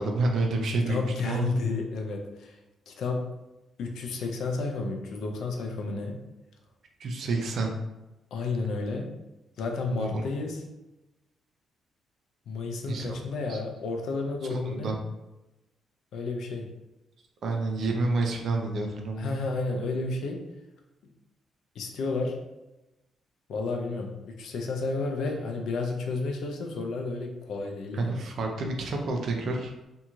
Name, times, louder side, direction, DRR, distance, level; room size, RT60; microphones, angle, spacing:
voice 1, 0.0-1.5 7.0-7.8 9.9-10.2 12.9-13.2 13.5-13.6 14.5-15.0 17.4-19.4 27.9-29.8, right 2 dB, 65° right, 2 dB, 0.5 m, -29 dB
voice 2, 0.9-2.6 2.9-3.3 3.8-6.2 8.3-9.2 9.6-10.7 12.5-15.0 16.1-16.7 19.2-20.5 21.7-22.4 23.5-24.1 24.4-28.2, left 3 dB, 75° left, 2 dB, 0.5 m, -31 dB
2.9 x 2.7 x 2.3 m, 1.0 s
cardioid pair, 85°, 0 cm